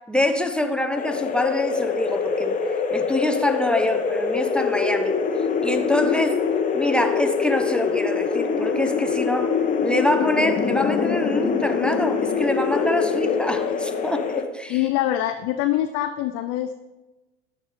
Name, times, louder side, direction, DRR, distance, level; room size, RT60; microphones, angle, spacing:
voice 1, 0.0-5.2 5.6-6.4 6.7-14.8, left 1 dB, 5° left, 5 dB, 0.6 m, -25 dB
sound 1, 1.0-14.4, left 5 dB, 20° left, 0.9 m, -24 dB
voice 2, 14.7-16.7, left 13 dB, 45° left, 8 dB, 0.5 m, -24 dB
12.0 x 4.2 x 3.6 m, 1.1 s
hypercardioid pair, 85°, 35 cm